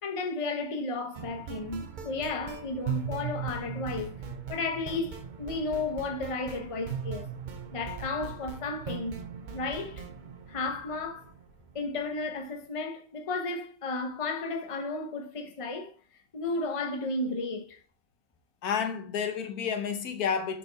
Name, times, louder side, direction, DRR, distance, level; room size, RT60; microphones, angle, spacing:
voice 1, 0.0-4.2 4.5-7.3 7.7-9.2 9.5-10.1 10.5-11.3 11.7-15.9 16.3-17.8, left 3 dB, 30° left, 0.8 m, -33 dB
sound 1, 1.1-12.1, right 7 dB, 50° right, 0.6 m, -39 dB
voice 2, 18.6-20.6, left 7 dB, 85° left, 1.4 m, -30 dB
6.2 x 4.2 x 4.0 m
omnidirectional pair, 1.5 m